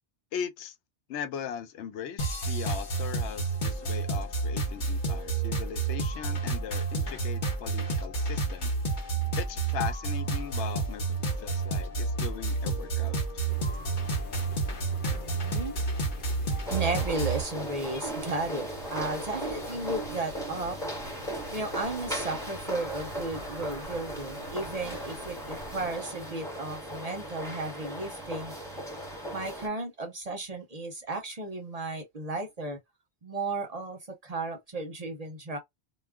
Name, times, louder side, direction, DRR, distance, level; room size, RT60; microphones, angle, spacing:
voice 1, 0.3-0.8 1.1-8.7 9.4-13.2, left 8 dB, 90° left, 0.9 m, -39 dB
sound 1, 2.2-17.4, right 3 dB, 50° left, 0.9 m, -30 dB
sound 2, 13.5-26.0, left 1 dB, 65° left, 1.1 m, -46 dB
voice 2, 14.7-15.7 16.7-20.8 21.5-28.5 29.3-32.8 33.2-35.6, right 2 dB, 45° right, 0.6 m, -34 dB
sound 3, 16.7-29.7, right 1 dB, 5° left, 1.0 m, -37 dB
2.4 x 2.1 x 3.4 m
omnidirectional pair, 1.1 m